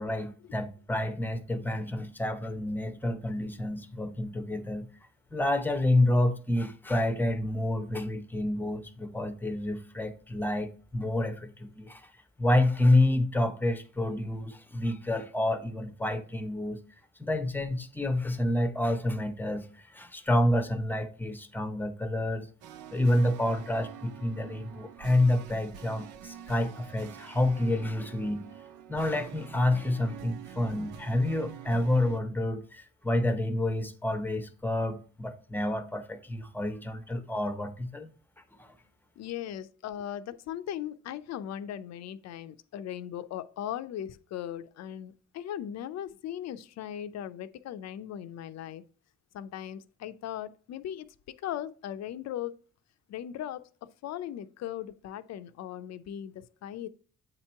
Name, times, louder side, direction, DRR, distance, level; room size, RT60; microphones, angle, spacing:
voice 1, 0.0-4.9 5.3-12.1 12.4-16.8 17.2-22.5 22.9-28.4 28.9-38.1 38.6-38.7, left 1 dB, 5° left, 0.7 m, -28 dB
sound 1, 22.6-32.2, right 9 dB, 80° right, 0.5 m, -46 dB
voice 2, 39.2-48.8 49.3-52.6 53.1-56.9, left 10 dB, 60° left, 0.5 m, -38 dB
8.0 x 2.9 x 4.4 m
cardioid pair, 90°, 30 cm